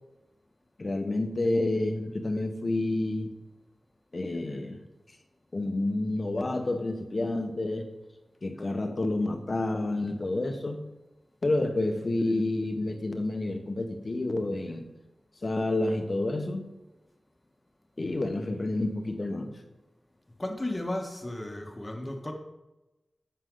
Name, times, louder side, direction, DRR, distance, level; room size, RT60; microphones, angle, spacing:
voice 1, 0.8-3.3 4.1-4.8 5.5-7.9 8.4-10.8 11.4-14.9 15.4-16.6 18.0-19.6, left 2 dB, 45° left, 6 dB, 1.4 m, -29 dB
voice 2, 20.4-22.3, left 1 dB, 25° left, 3 dB, 1.7 m, -34 dB
10.0 x 7.3 x 4.0 m, 1.0 s
cardioid pair, 50°, 0 cm